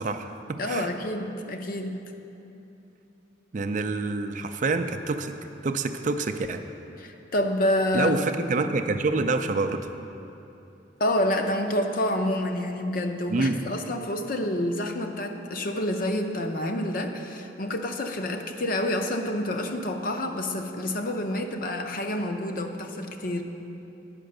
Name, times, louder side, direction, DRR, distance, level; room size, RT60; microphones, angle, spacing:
voice 1, 0.0-0.9 3.5-5.3 5.6-6.6 7.9-9.8 13.3-13.6, right 3 dB, 45° right, 8 dB, 0.4 m, -27 dB
voice 2, 0.6-2.0 7.0-8.2 11.0-23.4, left 1 dB, 50° left, 5 dB, 0.6 m, -28 dB
9.0 x 5.9 x 6.5 m, 2.9 s
head